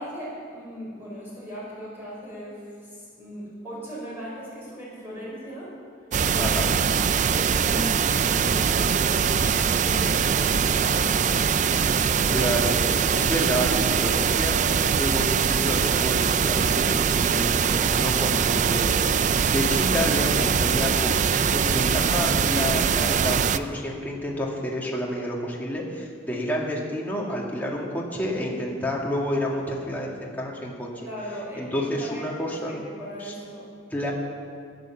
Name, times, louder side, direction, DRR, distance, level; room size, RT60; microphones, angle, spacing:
voice 1, 0.0-5.7 6.2-6.7 7.2-11.4 11.9-12.4 26.3-26.5 31.0-33.8, equal, 10° right, -7 dB, 4.2 m, -38 dB
sound 1, 6.1-23.6, right 7 dB, 40° right, 0.3 m, -22 dB
voice 2, 6.4-6.7 12.3-12.8 13.1-31.1 31.5-32.7 33.2-33.3 33.9-34.1, equal, 10° left, -3 dB, 2.1 m, -29 dB
13.5 x 10.0 x 7.3 m, 2.2 s
head